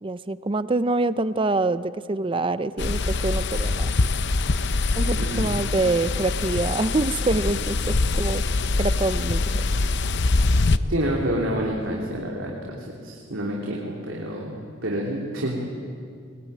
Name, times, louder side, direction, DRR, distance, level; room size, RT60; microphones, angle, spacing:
voice 1, 0.0-3.9 5.0-8.4 8.8-9.6, right 2 dB, 25° right, 14 dB, 0.6 m, -25 dB
sound 1, 2.8-10.8, left 3 dB, 60° left, 0.7 m, -24 dB
voice 2, 5.2-5.6 10.9-15.7, right 1 dB, 75° right, -2 dB, 3.1 m, -28 dB
21.5 x 21.5 x 9.4 m, 2.3 s
head